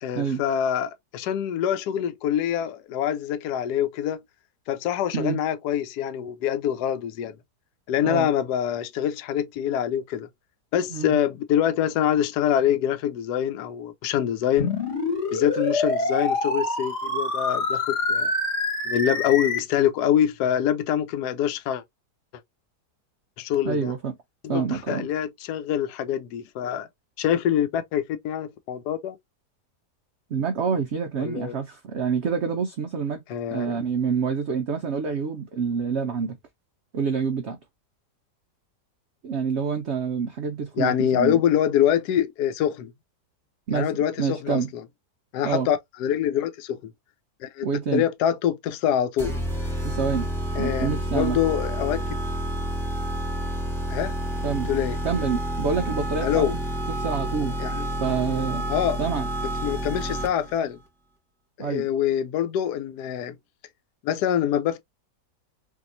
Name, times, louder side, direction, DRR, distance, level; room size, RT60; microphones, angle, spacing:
voice 1, 0.0-4.2 4.7-7.4 7.9-10.3 10.7-14.7 15.3-18.3 18.8-21.8 23.4-23.9 24.4-26.9 27.2-29.2 31.2-31.6 33.3-33.8 40.8-42.9 43.7-44.8 45.3-46.9 47.4-47.7 47.9-49.4 50.5-52.2 53.9-54.1 54.7-55.0 56.2-56.5 57.6-57.9 58.7-59.0 59.6-60.8 61.6-63.4 64.0-64.8, left 10 dB, 75° left, 1.1 m, -25 dB
sound 1, 14.6-19.6, left 2 dB, 45° left, 1.2 m, -26 dB
voice 2, 23.6-24.1 24.5-25.1 30.3-33.2 33.5-36.4 36.9-37.6 39.2-41.4 43.7-43.9 44.2-44.7 45.4-45.7 47.6-48.0 49.8-50.3 50.6-51.4 54.4-54.7 55.0-56.6 56.9-57.6 58.0-58.6 59.0-59.3 61.6-61.9, right 6 dB, 90° right, 0.6 m, -27 dB
sound 2, 49.2-60.6, right 1 dB, 5° left, 0.4 m, -29 dB
3.5 x 2.8 x 2.6 m
omnidirectional pair, 1.8 m